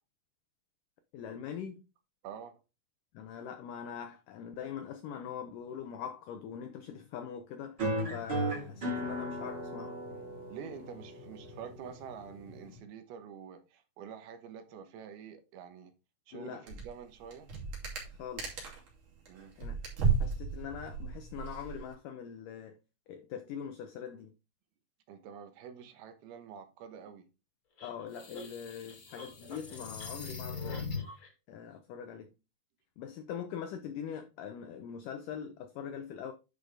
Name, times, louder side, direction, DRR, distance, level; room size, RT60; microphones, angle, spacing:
voice 1, 1.1-1.8 3.1-7.8 8.1-10.0 16.3-16.7 18.2-18.7 19.6-19.8 20.2-22.8 23.1-24.3 27.8-30.9 31.5-32.3 33.0-36.3, left 8 dB, 85° left, 1.9 m, -42 dB
voice 2, 2.2-2.6 10.5-15.9 16.3-17.5 19.3-19.5 25.1-27.3, right 7 dB, 75° right, 2.9 m, -47 dB
sound 1, 7.8-12.8, right 1 dB, 30° right, 3.4 m, -37 dB
sound 2, 16.7-17.0 17.2-18.9 19.3-21.9, right 5 dB, 50° right, 3.9 m, -34 dB
sound 3, 27.8-31.3, left 4 dB, 40° left, 2.0 m, -41 dB
10.5 x 5.3 x 3.3 m
omnidirectional pair, 4.7 m